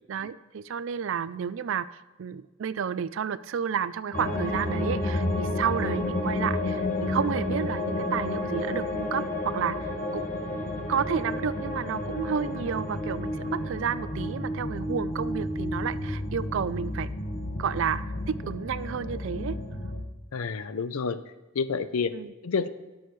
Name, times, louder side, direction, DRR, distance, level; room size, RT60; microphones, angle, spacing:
voice 1, 0.1-1.9 2.2-10.3 10.9-17.1 17.6-19.6 22.1-22.3, right 7 dB, 60° right, 17 dB, 0.3 m, -31 dB
sound 1, 4.1-20.0, left 1 dB, 35° left, 1.1 m, -31 dB
voice 2, 20.3-21.2 21.5-22.1 22.4-22.7, left 5 dB, 80° left, 13 dB, 0.5 m, -28 dB
18.0 x 6.3 x 3.2 m, 1.1 s
head